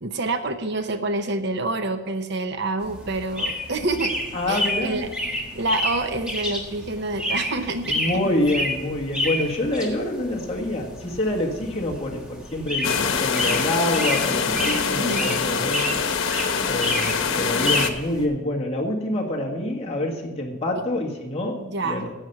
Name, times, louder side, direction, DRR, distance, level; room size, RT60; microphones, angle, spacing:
voice 1, 0.0-4.1 4.5-5.1 5.5-8.3 14.8-15.3 21.6-22.1, right 2 dB, 55° right, 8 dB, 0.8 m, -27 dB
sound 1, 2.8-18.2, left 1 dB, 5° right, 1.6 m, -30 dB
voice 2, 4.3-5.0 7.9-15.9 16.7-22.1, left 1 dB, 30° left, -1 dB, 1.8 m, -26 dB
sound 2, 12.8-17.9, left 5 dB, 90° left, 1.0 m, -24 dB
11.0 x 8.2 x 5.9 m, 1.1 s
head